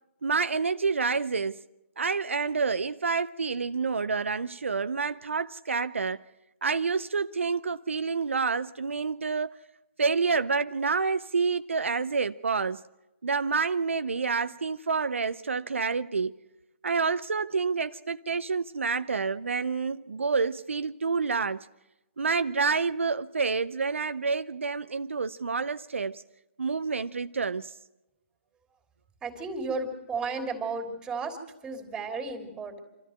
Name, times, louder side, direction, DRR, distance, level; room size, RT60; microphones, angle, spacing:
voice 1, 0.2-1.6 2.0-6.2 6.6-9.6 10.0-12.8 13.2-16.4 16.8-21.7 22.2-26.2 26.6-27.7, right 4 dB, 80° right, 0.6 m, -28 dB
voice 2, 29.2-32.8, right 3 dB, 10° right, 3.2 m, -34 dB
26.5 x 13.5 x 7.9 m
figure-of-eight pair, 140°, 7 cm